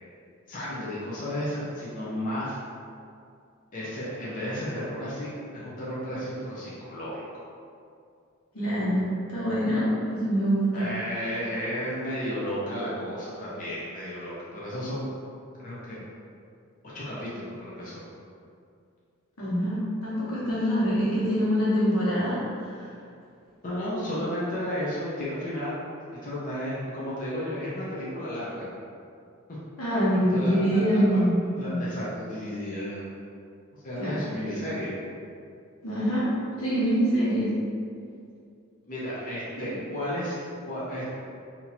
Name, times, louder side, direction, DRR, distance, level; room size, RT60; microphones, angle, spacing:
voice 1, 0.5-2.6 3.7-7.2 10.7-15.1 15.6-16.0 16.9-18.0 23.6-25.8 26.2-28.6 30.3-31.3 31.5-33.2 33.7-34.9 38.8-41.0, equal, 40° left, -8 dB, 0.7 m, -33 dB
voice 2, 8.5-10.8 19.4-22.4 29.8-31.3 31.6-31.8 34.0-34.1 35.8-36.2 36.6-37.5, equal, 90° left, -9 dB, 1.3 m, -24 dB
2.8 x 2.8 x 4.1 m, 2.4 s
head